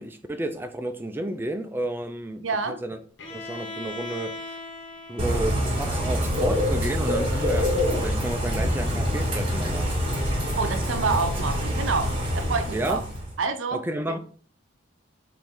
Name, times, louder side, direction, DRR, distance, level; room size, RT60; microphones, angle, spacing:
voice 1, 0.0-3.0 3.3-4.6 5.1-9.9 12.7-13.0 13.7-14.2, right 1 dB, 10° right, 6 dB, 0.4 m, -32 dB
voice 2, 2.4-2.8 10.6-13.0 13.4-13.8 14.1-14.2, right 4 dB, 85° right, 8 dB, 0.6 m, -27 dB
Bowed string instrument, 3.2-7.1, left 2 dB, 70° left, 0.8 m, -40 dB
Bird / Rain, 5.2-13.3, equal, 30° right, 1.7 m, -25 dB
4.9 x 2.6 x 3.7 m, 0.44 s
head